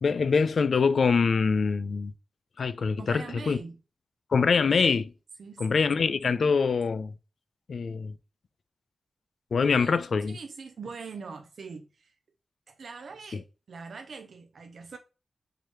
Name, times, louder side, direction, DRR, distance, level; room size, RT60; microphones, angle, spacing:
voice 1, 0.0-2.1 2.6-3.6 4.3-5.1 5.6-7.1 7.7-8.1 9.5-10.4, left 5 dB, 65° left, 0.3 m, -24 dB
voice 2, 3.0-3.8 5.4-6.2 9.7-12.1 12.7-15.0, right 5 dB, 75° right, 0.4 m, -43 dB
4.7 x 2.8 x 3.0 m
wide cardioid pair, 135°, 0 cm